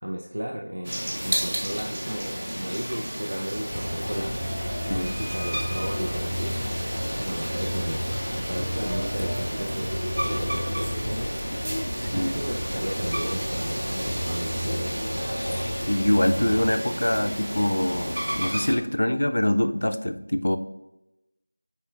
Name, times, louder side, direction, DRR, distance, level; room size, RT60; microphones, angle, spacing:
voice 1, 0.0-4.4 4.9-6.6 7.2-11.4 12.1-15.0, equal, 55° right, 0 dB, 0.6 m, -34 dB
sound 1, 0.8-18.8, equal, 35° right, 1.0 m, -32 dB
sound 2, 3.7-16.7, equal, ahead, 0.7 m, -32 dB
voice 2, 15.8-20.6, left 1 dB, 50° left, 9 dB, 0.4 m, -24 dB
9.9 x 4.3 x 2.4 m, 0.95 s
figure-of-eight pair, 175°, 0 cm